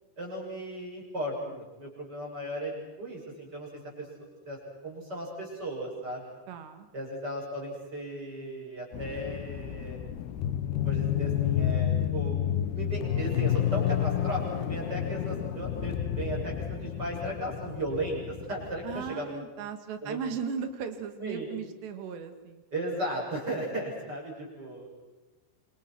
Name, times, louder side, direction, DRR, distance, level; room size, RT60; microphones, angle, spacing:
voice 1, 0.2-4.6 4.8-6.2 6.9-10.0 10.8-19.4 20.0-20.2 21.2-21.5 22.7-24.9, right 1 dB, 20° right, -2 dB, 7.6 m, -36 dB
voice 2, 6.5-6.9 18.8-22.6, right 6 dB, 75° right, 9 dB, 4.0 m, -37 dB
sound 1, 8.9-19.1, left 10 dB, 70° left, 3.0 m, -30 dB
28.5 x 27.0 x 6.2 m, 1.1 s
omnidirectional pair, 5.1 m